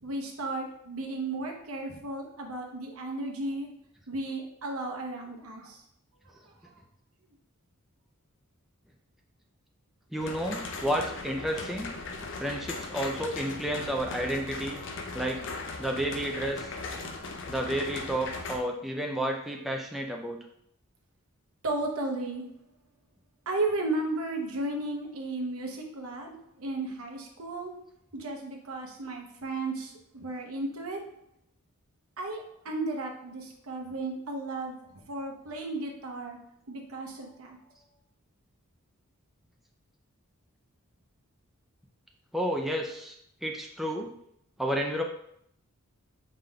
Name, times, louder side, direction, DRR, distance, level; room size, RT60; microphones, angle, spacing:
voice 1, 0.0-3.7 4.1-5.8 6.4-6.7 21.6-22.5 23.5-27.7 28.1-31.0 32.2-36.4 36.7-37.6, right 2 dB, 70° right, 2 dB, 0.8 m, -34 dB
voice 2, 10.1-11.9 12.4-14.8 15.1-15.4 15.8-16.7 17.5-20.4 42.3-43.2 43.4-44.1 44.6-45.0, right 1 dB, ahead, 1 dB, 0.4 m, -31 dB
sound 1, 10.2-18.6, left 3 dB, 55° left, 0.5 m, -38 dB
5.0 x 3.7 x 2.2 m, 0.72 s
head